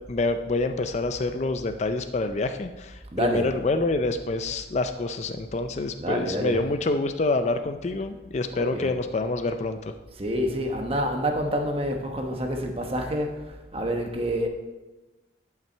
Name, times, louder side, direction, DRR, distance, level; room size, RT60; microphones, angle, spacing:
voice 1, 0.1-9.8, left 2 dB, 35° left, 8 dB, 0.4 m, -27 dB
voice 2, 3.1-3.5 6.0-6.6 8.5-8.9 10.1-14.5, equal, 30° right, 3 dB, 1.0 m, -28 dB
10.5 x 5.9 x 4.4 m, 1.1 s
head